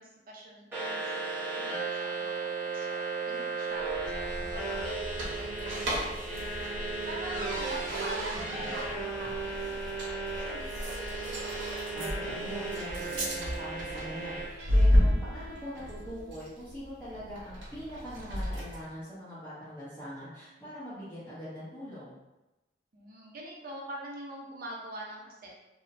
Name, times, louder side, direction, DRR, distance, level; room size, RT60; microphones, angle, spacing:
voice 1, 0.0-1.9 2.1-3.0 3.3-6.7 7.1-10.9 11.2-11.6 22.9-25.5, right 1 dB, 50° right, -2 dB, 0.6 m, -45 dB
sound 1, 0.7-14.5, right 3 dB, 10° right, 0.9 m, -35 dB
sound 2, 3.8-18.9, equal, 80° right, 0.8 m, -32 dB
voice 2, 11.9-22.1, equal, 15° left, -14 dB, 0.7 m, -43 dB
Wind instrument woodwind instrument, 12.9-18.0, right 1 dB, 65° left, 1.0 m, -54 dB
2.8 x 2.1 x 2.4 m, 1.0 s
head